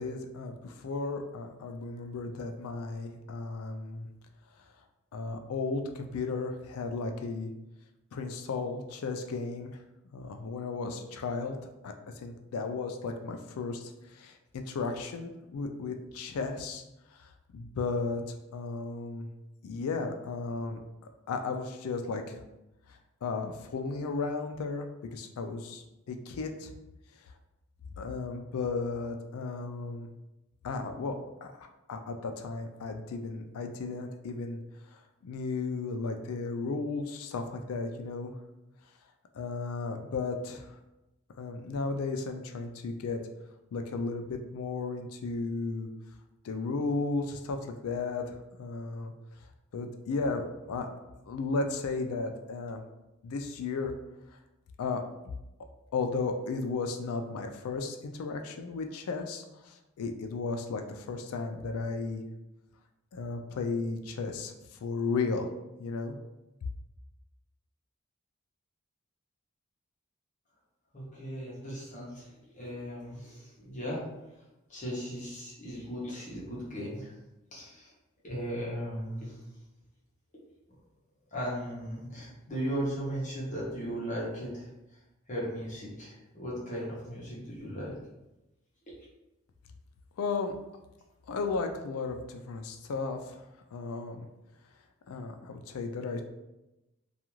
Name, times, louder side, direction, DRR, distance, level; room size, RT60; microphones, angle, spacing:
voice 1, 0.0-4.1 5.1-7.5 8.1-9.8 10.1-11.6 11.8-16.8 17.1-18.2 18.5-19.3 19.6-20.8 21.3-22.4 22.9-26.7 27.2-27.3 28.0-30.1 30.6-34.6 34.9-38.3 39.3-40.7 41.4-43.2 43.7-45.9 46.4-49.1 49.7-50.9 51.3-52.8 53.2-53.9 54.8-55.0 55.9-62.2 63.1-65.5 65.8-66.1 90.2-90.5 91.3-93.4 93.7-94.3 95.1-96.2, left 4 dB, 85° left, 5 dB, 0.4 m, -34 dB
voice 2, 70.9-74.2 74.7-77.1 77.5-77.9 78.2-79.3 81.3-84.7 85.3-87.9, equal, 35° left, -6 dB, 0.7 m, -37 dB
2.4 x 2.3 x 3.0 m, 0.97 s
head